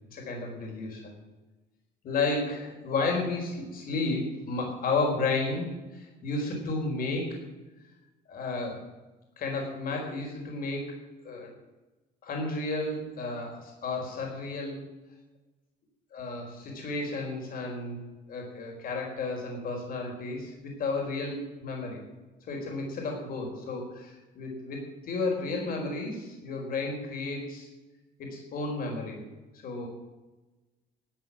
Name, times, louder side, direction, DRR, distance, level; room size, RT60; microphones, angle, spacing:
voice 1, 0.1-1.1 2.0-7.3 8.3-8.8 9.4-11.0 11.2-11.5 12.2-14.8 16.1-18.0 18.3-22.0 22.5-27.7 28.2-29.2 29.6-29.9, left 3 dB, 60° left, 0 dB, 4.6 m, -32 dB
13.5 x 8.4 x 9.9 m, 1.1 s
cardioid pair, 110°, 17 cm